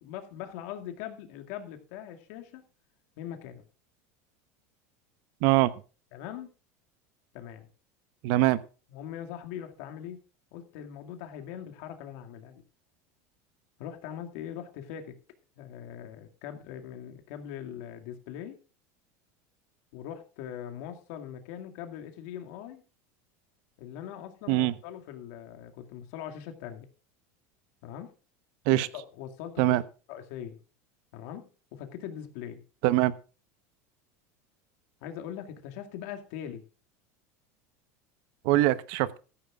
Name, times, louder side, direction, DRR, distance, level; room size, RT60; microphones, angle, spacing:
voice 1, 0.0-2.6 3.2-3.6 6.1-6.5 7.3-7.7 8.9-10.2 10.5-12.6 13.8-15.2 15.6-18.6 19.9-22.8 23.8-26.9 27.8-28.1 28.7-29.8 30.1-30.6 31.1-32.6 35.0-36.6 38.5-38.6, left 10 dB, 70° left, 5 dB, 2.2 m, -41 dB
voice 2, 5.4-5.7 8.2-8.6 24.5-24.7 28.7-28.9 29.6-29.8 32.8-33.1 38.4-39.2, right 16 dB, 65° right, 16 dB, 1.0 m, -23 dB
14.0 x 13.5 x 2.4 m, 0.35 s
supercardioid pair, 130°, 8 cm